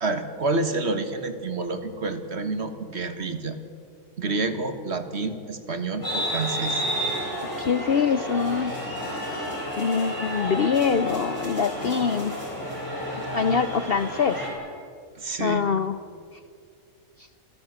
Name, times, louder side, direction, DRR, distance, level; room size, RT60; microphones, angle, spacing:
voice 1, 0.0-3.6 4.2-6.8 15.2-15.7, right 3 dB, 50° right, 8 dB, 1.8 m, -28 dB
sound 1, 6.0-14.5, equal, 15° left, 7.1 m, -31 dB
voice 2, 7.6-8.7 9.8-12.3 13.3-14.4 15.4-16.0, left 6 dB, 55° left, 11 dB, 0.7 m, -24 dB
27.0 x 15.0 x 8.0 m, 2.2 s
omnidirectional pair, 1.5 m